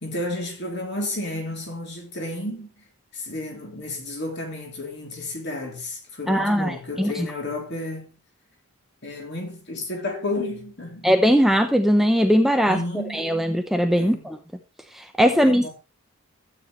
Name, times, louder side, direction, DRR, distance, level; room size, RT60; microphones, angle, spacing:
voice 1, 0.0-2.8 3.1-8.2 9.0-11.1 12.6-13.4 13.9-14.3 15.3-15.7, left 2 dB, 50° left, 3.1 m, -32 dB
voice 2, 6.3-7.3 11.0-12.8 13.1-14.4 14.9-15.7, equal, ahead, 0.6 m, -20 dB
12.5 x 8.4 x 3.2 m
head